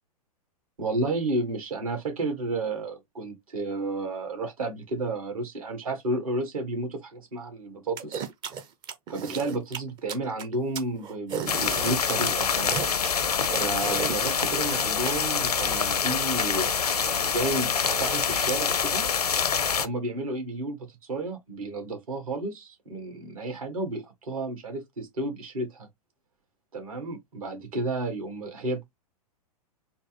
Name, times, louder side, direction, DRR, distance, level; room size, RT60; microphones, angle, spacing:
voice 1, 0.8-8.3 9.1-12.8 13.5-19.1 19.8-25.9 26.7-29.0, right 2 dB, 60° right, 1.7 m, -32 dB
swallow gobble up, 8.0-15.1, right 7 dB, 25° right, 0.5 m, -34 dB
sound 1, 11.5-19.9, left 6 dB, 75° left, 0.5 m, -26 dB
4.3 x 2.0 x 2.9 m
figure-of-eight pair, 105°, 20 cm